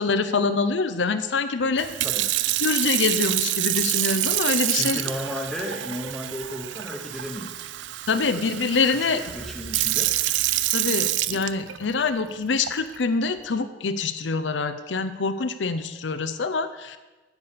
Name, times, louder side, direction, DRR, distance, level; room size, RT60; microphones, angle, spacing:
voice 1, 0.0-1.9 2.6-5.0 8.1-9.2 10.7-17.0, left 4 dB, 85° left, 9 dB, 0.7 m, -25 dB
Sink (filling or washing) / Fill (with liquid), 1.8-12.0 12.7-13.0, right 15 dB, 80° right, 0.4 m, -27 dB
voice 2, 2.0-2.3 4.7-7.5 8.1-8.4 8.9-10.1, equal, ahead, 1 dB, 1.0 m, -34 dB
sound 1, 9.2-11.8, equal, 60° right, 3.5 m, -46 dB
8.2 x 6.9 x 6.7 m, 1.2 s
head